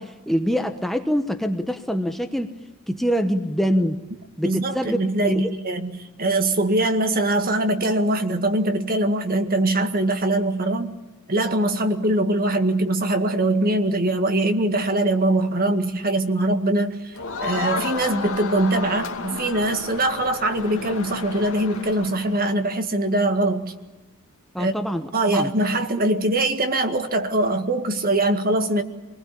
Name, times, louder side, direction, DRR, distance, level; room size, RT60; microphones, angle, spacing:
voice 1, 0.0-2.5 2.9-4.0 4.4-5.0 5.2-5.5 24.5-25.5, equal, ahead, 6 dB, 1.1 m, -24 dB
voice 2, 4.4-10.9 11.3-17.1 17.4-23.7 24.6-24.7 25.1-28.8, right 1 dB, 40° right, 7 dB, 1.9 m, -22 dB
Crowd, 17.1-22.5, left 4 dB, 70° left, 2.2 m, -32 dB
26.0 x 20.5 x 8.5 m, 1.1 s
head